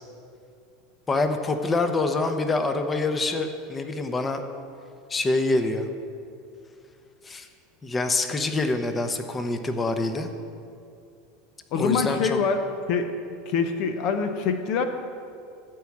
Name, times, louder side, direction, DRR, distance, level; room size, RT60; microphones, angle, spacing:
voice 1, 1.1-4.4 5.1-5.9 7.2-7.5 7.8-10.3 11.7-12.4, left 2 dB, 20° left, 7 dB, 0.9 m, -26 dB
voice 2, 11.7-12.6 12.9-13.1 13.5-14.8, left 5 dB, 60° left, 7 dB, 0.8 m, -24 dB
14.0 x 4.7 x 7.3 m, 2.4 s
hypercardioid pair, 95°, 0 cm